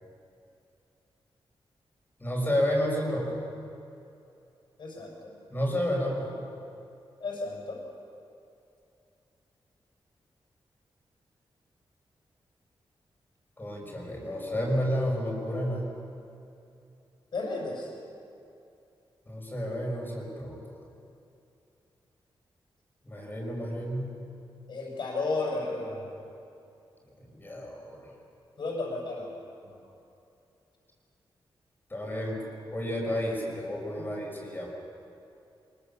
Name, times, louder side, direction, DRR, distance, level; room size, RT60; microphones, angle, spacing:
voice 1, 2.2-3.4 5.5-6.3 13.6-15.9 19.3-20.6 23.0-24.2 27.2-28.1 31.9-34.8, equal, 20° left, -1 dB, 5.6 m, -31 dB
voice 2, 4.8-5.1 7.2-7.8 17.3-17.9 24.7-26.1 28.6-29.3 29.6-29.8, left 3 dB, 60° left, -3 dB, 6.6 m, -33 dB
25.0 x 22.5 x 7.1 m, 2.7 s
wide cardioid pair, 140°, 9 cm